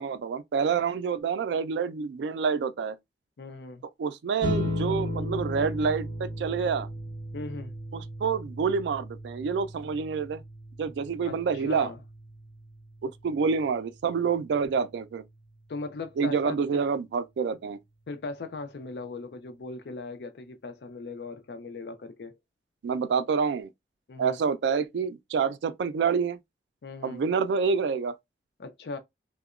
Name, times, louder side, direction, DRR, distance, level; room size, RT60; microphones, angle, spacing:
voice 1, 0.0-3.0 4.0-6.9 7.9-10.4 10.8-11.9 13.0-15.2 16.2-17.8 22.8-23.7 24.2-26.4 27.0-28.1, right 5 dB, 85° right, 0.3 m, -27 dB
voice 2, 3.4-3.8 7.3-7.7 11.2-12.0 15.7-16.8 18.1-22.4 24.1-24.4 26.8-27.2 28.6-29.0, left 3 dB, 75° left, 0.4 m, -39 dB
sound 1, 4.4-15.2, left 1 dB, 30° right, 1.5 m, -36 dB
2.8 x 2.1 x 2.3 m
head